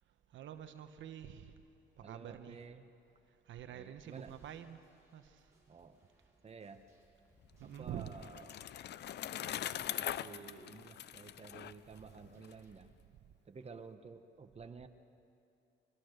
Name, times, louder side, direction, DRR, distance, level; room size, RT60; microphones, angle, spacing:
voice 1, 0.3-1.5 2.0-2.6 3.5-5.4 7.6-8.1 13.2-13.3, right 10 dB, 70° right, 8 dB, 1.1 m, -47 dB
voice 2, 2.0-2.9 3.7-4.3 5.7-6.0 6.4-6.8 7.6-8.5 10.0-12.9 13.4-14.9, right 5 dB, 30° right, 7 dB, 1.2 m, -52 dB
sound 1, 4.0-12.7, right 2 dB, 15° right, 7.0 m, -73 dB
Bicycle, 7.5-12.5, left 11 dB, 60° left, 0.6 m, -42 dB
24.0 x 21.5 x 6.6 m, 2.7 s
cardioid pair, 90°, 20 cm